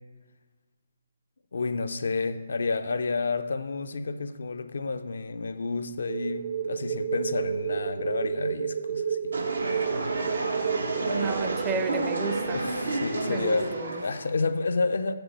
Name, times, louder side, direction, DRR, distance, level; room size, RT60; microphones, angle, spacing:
voice 1, 1.5-9.3 12.5-13.8 14.0-15.1, left 4 dB, 70° left, 0.4 m, -30 dB
sound 1, 6.1-12.5, right 7 dB, 60° right, 0.7 m, -31 dB
sound 2, 9.3-14.3, right 2 dB, 85° right, 1.0 m, -31 dB
voice 2, 11.0-12.6 13.2-14.0, right 4 dB, 20° right, 0.5 m, -32 dB
6.1 x 4.8 x 6.5 m
hypercardioid pair, 150°, 0 cm